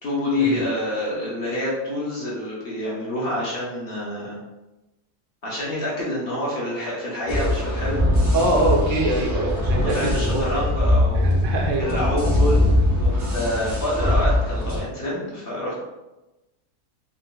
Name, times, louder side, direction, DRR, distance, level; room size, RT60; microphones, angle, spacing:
voice 1, 0.0-4.3 5.4-8.0 9.8-11.4 11.8-15.7, left 1 dB, 50° left, -7 dB, 1.0 m, -27 dB
sound 1, 7.3-14.8, left 1 dB, 25° right, 0.4 m, -21 dB
voice 2, 8.3-10.4 11.1-12.0, right 1 dB, 70° right, -1 dB, 0.9 m, -24 dB
3.8 x 2.3 x 2.2 m, 1.0 s
omnidirectional pair, 1.4 m